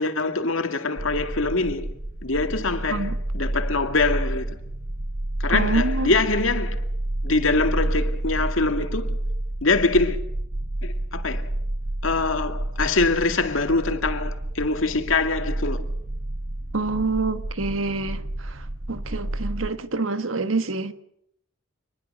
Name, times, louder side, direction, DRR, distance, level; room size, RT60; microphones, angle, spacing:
voice 1, 0.0-1.9 2.2-4.6 5.4-6.8 7.2-9.2 9.6-10.2 10.8-11.5 12.0-15.9, left 3 dB, 80° left, 2.2 m, -24 dB
sound 1, 1.0-19.7, right 1 dB, 60° right, 1.7 m, -29 dB
voice 2, 5.5-6.1 16.7-20.9, right 3 dB, 85° right, 1.5 m, -27 dB
26.0 x 20.5 x 6.7 m
head